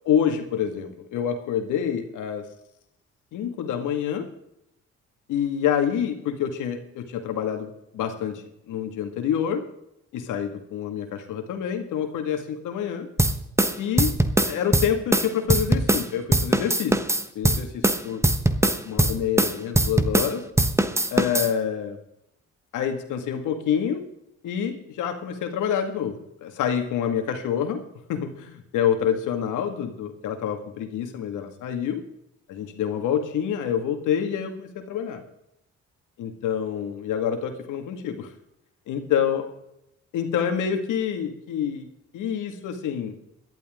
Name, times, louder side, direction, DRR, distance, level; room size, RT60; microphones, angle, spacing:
voice 1, 0.1-2.4 3.3-4.3 5.3-9.6 10.1-13.1 13.8-14.1 14.5-17.0 17.3-18.2 18.9-20.5 21.1-22.0 22.7-24.0 24.4-27.8 28.1-32.0 32.5-35.2 36.2-38.3 38.9-39.4 40.1-41.9 42.1-43.1, left 8 dB, 90° left, 6 dB, 2.1 m, -27 dB
sound 1, 13.2-16.1 16.3-20.3 20.6-21.5, right 1 dB, 10° right, 1.1 m, -21 dB
17.0 x 12.0 x 3.8 m, 0.80 s
cardioid pair, 90°, 30 cm